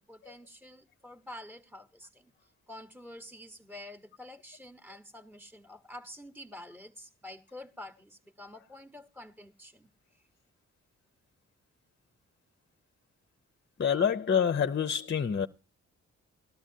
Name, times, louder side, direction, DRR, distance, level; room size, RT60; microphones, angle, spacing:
voice 1, 0.1-2.3 2.7-9.9 10.1-10.2, left 1 dB, 5° right, 1.1 m, -48 dB
voice 2, 13.8-15.5, left 7 dB, 35° left, 0.6 m, -27 dB
18.0 x 12.5 x 2.7 m
cardioid pair, 55°, 31 cm